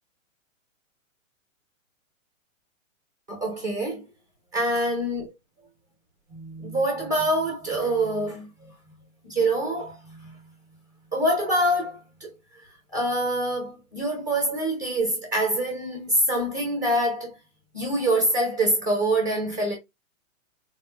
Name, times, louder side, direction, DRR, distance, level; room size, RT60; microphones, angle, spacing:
voice 1, 3.3-4.1 4.5-5.3 6.3-8.7 9.2-10.4 11.1-17.4 17.7-19.8, right 1 dB, 15° right, 0.6 m, -25 dB
4.1 x 2.5 x 2.2 m
hypercardioid pair, 175°, 40 cm